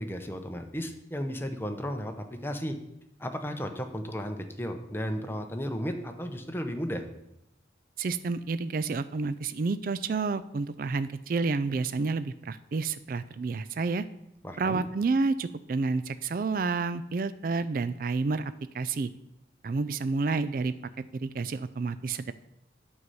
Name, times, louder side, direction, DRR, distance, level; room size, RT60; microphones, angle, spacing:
voice 1, 0.0-2.8 3.2-7.0 14.4-14.8, equal, 10° left, 5 dB, 0.8 m, -34 dB
voice 2, 8.0-14.0 14.6-19.1 19.6-20.7 21.2-22.3, right 4 dB, 50° right, 13 dB, 0.4 m, -29 dB
9.5 x 5.5 x 7.9 m, 0.83 s
head